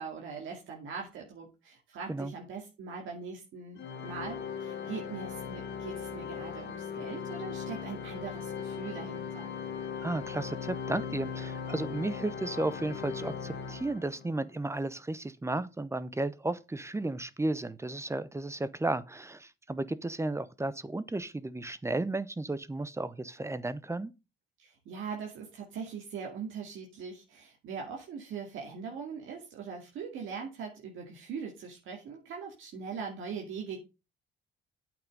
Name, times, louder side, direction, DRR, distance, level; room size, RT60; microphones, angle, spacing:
voice 1, 0.0-9.5 24.6-33.8, right 5 dB, 80° right, 2.3 m, -41 dB
Organ, 3.8-14.4, left 6 dB, 60° left, 1.4 m, -39 dB
voice 2, 10.0-24.1, right 2 dB, 15° right, 0.7 m, -34 dB
8.6 x 6.1 x 5.3 m
cardioid pair, 90°, 20 cm